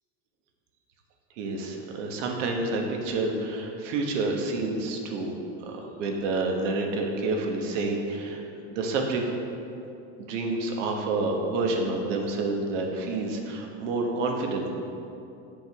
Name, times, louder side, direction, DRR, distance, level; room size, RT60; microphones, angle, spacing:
voice 1, 1.4-5.3 5.6-8.4 8.7-9.2 10.2-14.7, right 3 dB, 80° right, 1 dB, 1.2 m, -28 dB
7.9 x 5.2 x 3.6 m, 2.7 s
supercardioid pair, 135°, 37 cm